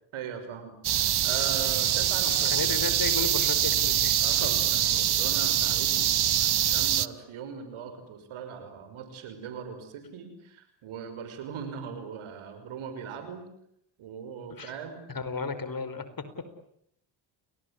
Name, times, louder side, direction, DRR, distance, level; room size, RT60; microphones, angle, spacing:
voice 1, 0.1-2.6 3.9-4.0 4.2-13.5 14.0-15.0, right 7 dB, 80° right, 9 dB, 6.0 m, -40 dB
sound 1, 0.8-7.1, right 10 dB, 55° right, 1.1 m, -24 dB
voice 2, 2.3-4.2 14.6-14.7 15.1-16.2, left 4 dB, 45° left, 11 dB, 5.1 m, -34 dB
29.5 x 20.5 x 9.8 m, 0.74 s
supercardioid pair, 50°, 48 cm